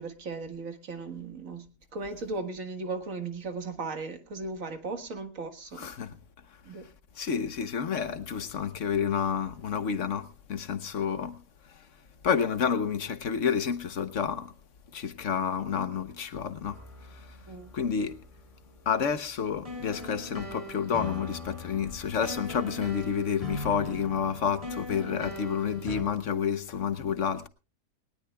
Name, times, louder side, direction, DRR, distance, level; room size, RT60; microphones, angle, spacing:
voice 1, 0.0-5.9 6.6-6.8 17.5-17.8, right 3 dB, 55° right, 2.0 m, -37 dB
voice 2, 5.8-6.2 7.1-11.9 12.2-14.5 14.9-17.4 17.7-18.2 18.8-27.5, left 7 dB, 55° left, 1.1 m, -30 dB
sound 1, 16.6-26.0, left 1 dB, 10° right, 6.9 m, -41 dB
21.0 x 19.0 x 2.3 m
omnidirectional pair, 1.7 m